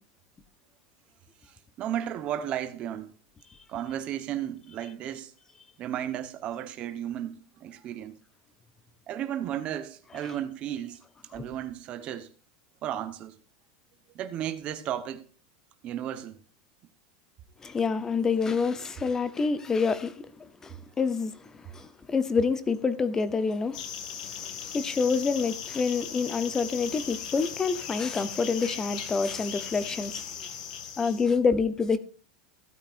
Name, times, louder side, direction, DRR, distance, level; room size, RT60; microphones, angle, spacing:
voice 1, 1.4-3.1 3.7-5.3 5.8-8.2 9.1-11.0 11.3-12.3 12.8-13.4 14.1-15.2 15.8-16.4, right 10 dB, 30° right, 1.0 m, -34 dB
voice 2, 17.6-20.1 20.6-21.3 21.7-23.8 24.6-30.2 31.0-32.0, left 5 dB, 15° left, 0.7 m, -27 dB
sound 1, 23.7-31.3, left 8 dB, 80° left, 1.9 m, -38 dB
15.5 x 8.9 x 2.5 m
supercardioid pair, 165°, 4 cm